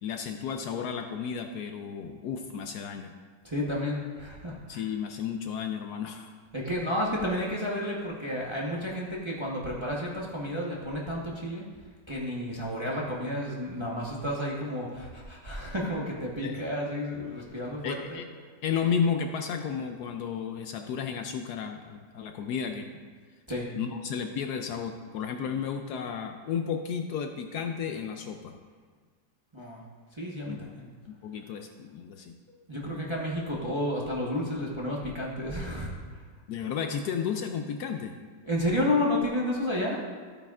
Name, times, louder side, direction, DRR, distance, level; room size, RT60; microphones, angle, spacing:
voice 1, 0.0-3.1 4.7-6.3 16.4-16.5 17.8-18.3 18.6-23.0 23.8-28.6 30.5-30.6 31.1-32.3 36.5-38.2, left 7 dB, 70° left, 5 dB, 1.0 m, -33 dB
voice 2, 3.4-4.9 6.5-11.7 12.1-18.0 23.5-23.7 29.5-29.8 30.1-30.9 32.7-36.2 38.4-40.0, left 1 dB, 20° right, -4 dB, 0.9 m, -31 dB
13.5 x 8.7 x 2.4 m, 1.5 s
omnidirectional pair, 1.9 m